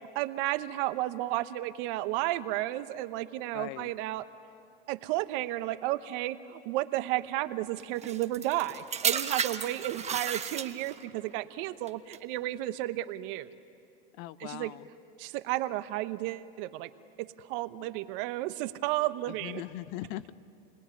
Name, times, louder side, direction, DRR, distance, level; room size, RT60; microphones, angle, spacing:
voice 1, 0.1-4.2 4.9-13.5 14.4-14.7 15.2-16.9 17.2-19.6, right 16 dB, 60° right, 12 dB, 1.1 m, -32 dB
voice 2, 3.5-3.9 14.2-14.9 17.8-17.9 19.4-20.3, left 15 dB, 60° left, 16 dB, 0.9 m, -40 dB
sound 1, 8.0-11.1 11.9-12.2, right 7 dB, 20° right, 1.2 m, -33 dB
28.5 x 20.5 x 9.8 m, 2.6 s
hypercardioid pair, 110°, 31 cm